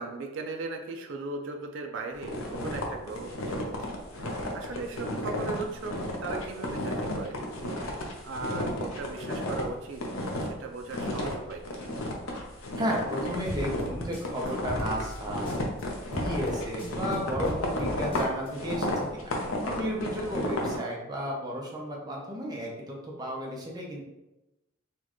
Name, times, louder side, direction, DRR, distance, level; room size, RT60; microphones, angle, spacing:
voice 1, 0.0-7.4 7.7-8.0 8.2-10.0 10.4-11.8 20.5-20.8, right 3 dB, 60° right, 3 dB, 0.4 m, -38 dB
sound 1, 2.2-9.7 9.9-10.5 10.9-20.8, left 1 dB, 75° left, 0.7 m, -33 dB
voice 2, 12.8-15.6 16.2-19.3 19.6-24.0, equal, 20° right, -2 dB, 0.7 m, -33 dB
sound 2, 13.5-15.8 16.1-18.5, equal, 25° left, 0.8 m, -37 dB
4.2 x 2.3 x 3.0 m, 0.97 s
head